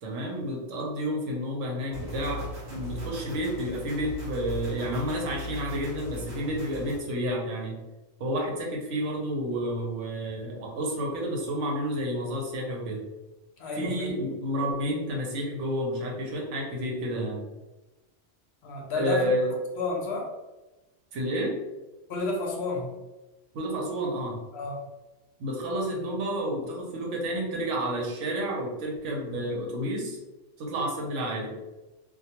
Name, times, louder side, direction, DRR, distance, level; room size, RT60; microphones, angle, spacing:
voice 1, 0.0-7.8 8.2-13.0 13.8-17.4 18.9-19.6 21.1-21.6 23.5-24.4 25.4-30.2 30.6-31.6, equal, 80° right, -1 dB, 1.0 m, -30 dB
sound 1, 1.9-7.0, equal, 60° right, 1.0 m, -38 dB
voice 2, 13.6-14.1 18.6-19.3 19.8-20.3 22.1-22.9 24.5-24.9, left 3 dB, 70° left, 0 dB, 0.8 m, -31 dB
2.2 x 2.2 x 2.8 m, 1.1 s
omnidirectional pair, 1.3 m